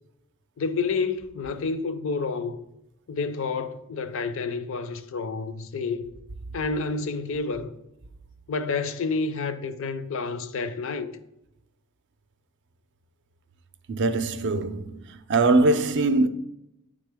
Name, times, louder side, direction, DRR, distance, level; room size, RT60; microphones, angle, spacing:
voice 1, 0.6-2.6 3.1-6.1 6.5-7.7 8.5-11.1, left 4 dB, 60° left, 0.5 m, -29 dB
voice 2, 13.9-15.0 15.3-16.3, right 2 dB, 50° right, 0.4 m, -21 dB
10.0 x 3.6 x 3.5 m
head